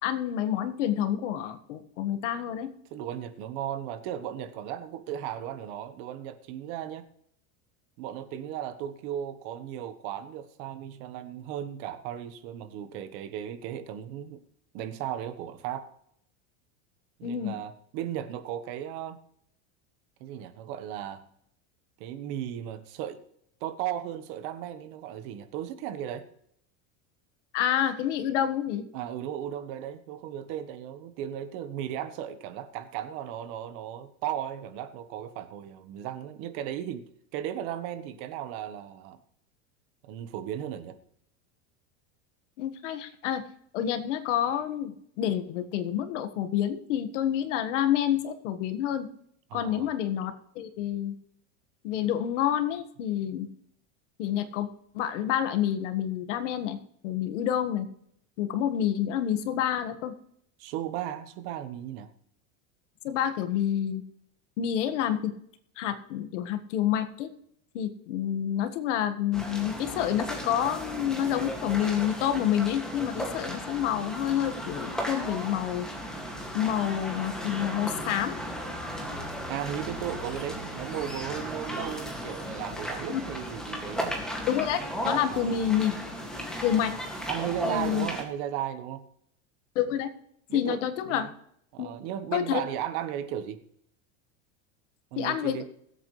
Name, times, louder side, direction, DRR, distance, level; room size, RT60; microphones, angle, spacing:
voice 1, 0.0-2.7 17.2-17.5 27.5-28.8 42.6-43.4 43.7-49.1 49.5-51.1 51.8-53.5 54.2-54.7 54.9-56.8 57.0-57.9 58.4-60.1 63.0-64.0 64.6-65.3 65.8-67.3 67.7-75.9 76.5-78.4 83.1-83.2 84.5-84.8 85.0-86.1 86.6-86.9 87.6-88.1 89.7-90.1 90.5-91.3 91.8-91.9 92.3-92.6 95.2-95.7, left 10 dB, 75° left, 9 dB, 1.7 m, -28 dB
voice 2, 2.9-7.1 8.0-14.4 14.7-15.9 17.2-19.2 20.2-21.2 22.0-23.2 23.6-26.3 28.9-37.1 37.3-39.2 40.0-41.0 49.5-49.9 60.6-62.1 79.5-84.2 85.3-85.7 87.3-89.1 90.5-91.3 91.7-93.6 95.1-95.7, right 10 dB, 50° right, 10 dB, 1.3 m, -36 dB
sound 1, 69.3-88.2, equal, ahead, 2.1 m, -35 dB
21.5 x 8.4 x 3.2 m, 0.70 s
supercardioid pair, 155°, 37 cm